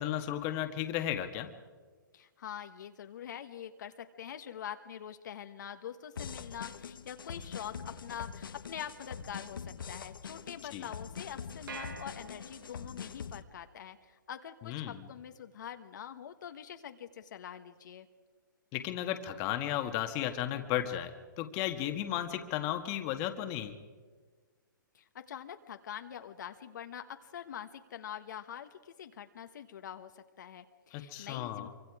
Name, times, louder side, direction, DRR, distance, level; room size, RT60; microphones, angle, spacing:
voice 1, 0.0-1.5 10.7-10.9 14.6-15.0 18.7-23.7 30.9-31.7, left 12 dB, 30° left, 7 dB, 1.5 m, -34 dB
voice 2, 2.1-18.1 24.9-31.7, left 9 dB, 60° left, 7 dB, 1.3 m, -45 dB
sound 1, 6.2-13.4, left 6 dB, 80° left, 1.2 m, -44 dB
sound 2, 11.7-13.0, right 5 dB, 70° right, 3.6 m, -46 dB
25.5 x 24.5 x 4.9 m, 1.4 s
hypercardioid pair, 145°, 11 cm